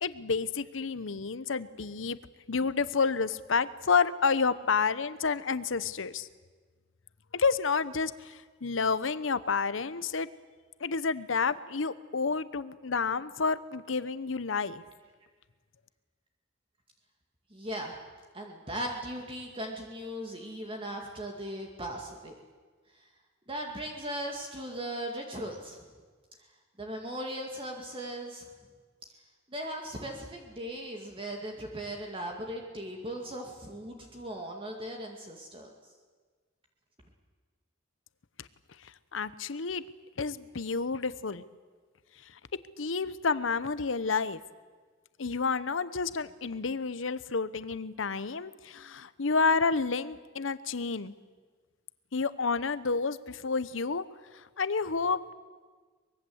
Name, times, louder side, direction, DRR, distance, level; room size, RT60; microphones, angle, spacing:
voice 1, 0.0-2.2 2.5-6.3 7.3-10.3 10.8-14.8 39.1-39.8 40.2-41.4 42.8-44.4 45.2-51.1 52.1-54.0 54.3-55.3, left 4 dB, 80° left, 15 dB, 0.9 m, -30 dB
voice 2, 17.5-18.0 18.3-22.3 23.5-25.8 26.8-28.5 29.5-35.7, right 1 dB, 30° right, 1 dB, 2.2 m, -38 dB
24.0 x 21.0 x 8.0 m, 1.5 s
head